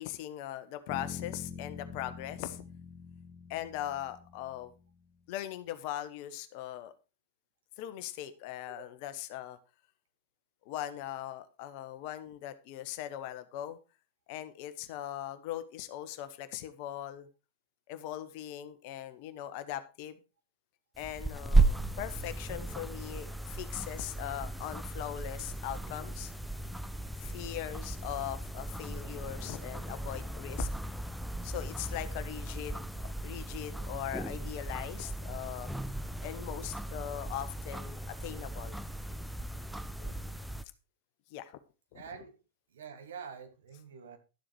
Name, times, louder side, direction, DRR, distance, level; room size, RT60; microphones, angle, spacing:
voice 1, 0.0-2.6 3.5-4.7 5.3-6.9 7.8-9.6 10.6-13.8 14.3-17.3 17.9-20.2 21.0-26.3 27.2-30.7 31.4-35.7 36.2-38.8 40.0-40.2 41.3-41.6 41.9-42.0, left 12 dB, 45° left, 11 dB, 1.2 m, -40 dB
sound 1, 0.9-4.8, left 6 dB, 20° left, 1.6 m, -45 dB
sound 2, 21.0-40.6, right 2 dB, ahead, 0.7 m, -35 dB
voice 2, 41.9-42.4 42.7-44.2, right 6 dB, 60° right, 7 dB, 2.2 m, -46 dB
12.0 x 7.6 x 4.6 m, 0.31 s
figure-of-eight pair, 90°, 0 cm